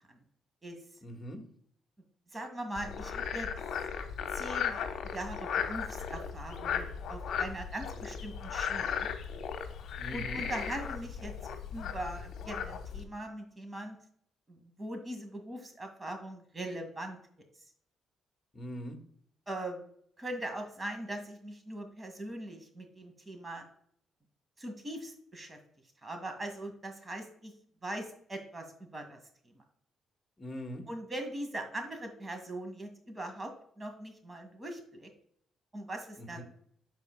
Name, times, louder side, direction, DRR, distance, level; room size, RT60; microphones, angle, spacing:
voice 1, 1.0-1.4 9.9-10.5 18.5-19.0 30.4-30.9 36.2-36.4, equal, 25° left, 2 dB, 1.7 m, -41 dB
voice 2, 2.3-3.5 4.3-4.8 5.1-9.1 10.1-11.3 11.7-14.0 14.5-17.2 19.5-19.9 20.2-23.6 24.6-25.6 26.0-27.5 27.8-29.2 29.4-29.6 30.9-33.5 33.8-35.1 35.7-36.4, right 1 dB, 25° right, 5 dB, 2.0 m, -41 dB
Frog, 2.8-13.0, left 7 dB, 70° left, 1.0 m, -36 dB
13.0 x 4.4 x 2.3 m, 0.64 s
cardioid pair, 90°, 0 cm